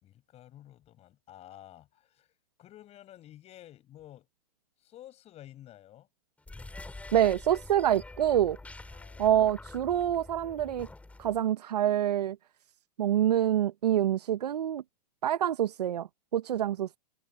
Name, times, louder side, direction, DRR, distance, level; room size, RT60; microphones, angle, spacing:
voice 1, 0.0-2.3 2.6-4.3 4.8-6.1 8.9-9.3, left 13 dB, 30° left, 6.0 m, -51 dB
sound 1, 6.4-11.5, left 2 dB, 5° left, 4.1 m, -46 dB
voice 2, 7.1-8.6 9.2-10.9 11.2-12.4 13.0-14.8 15.2-16.1 16.3-17.0, right 11 dB, 80° right, 1.0 m, -26 dB
hypercardioid pair, 115°, 20 cm